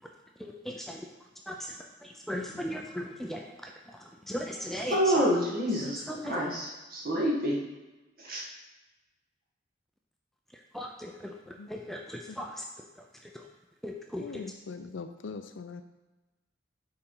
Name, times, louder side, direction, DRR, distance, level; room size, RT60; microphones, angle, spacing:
voice 1, 0.4-1.1 1.5-5.2 6.0-6.4 10.5-12.7 13.0-13.5 13.8-14.5, equal, ahead, 1 dB, 0.5 m, -38 dB
voice 2, 4.9-7.6 8.2-8.4, equal, 50° right, -2 dB, 1.7 m, -28 dB
voice 3, 14.2-15.8, left 4 dB, 70° left, 9 dB, 0.5 m, -41 dB
6.7 x 4.2 x 5.5 m, 1.1 s
head